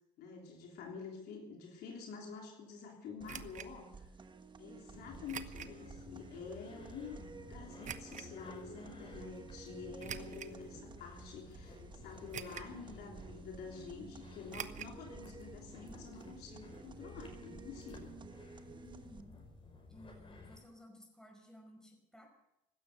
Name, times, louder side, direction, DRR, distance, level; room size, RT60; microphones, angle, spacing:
voice 1, 0.2-4.1 4.6-18.1, left 5 dB, 75° left, 0 dB, 3.5 m, -48 dB
sound 1, 3.2-19.2, right 4 dB, 25° right, 1.3 m, -53 dB
sound 2, 3.3-3.7 5.3-5.8 6.3-6.4 7.8-8.3 10.0-10.6 11.2-11.3 12.3-12.8 13.1-13.2 14.5-15.0 15.2-15.3 15.6-15.7, right 8 dB, 45° right, 1.0 m, -45 dB
sound 3, 4.9-20.6, left 4 dB, 30° left, 5.5 m, -55 dB
voice 2, 18.8-19.4 19.9-22.3, equal, 5° left, 1 dB, 5.1 m, -57 dB
16.0 x 12.5 x 6.7 m, 0.89 s
cardioid pair, 110°, 17 cm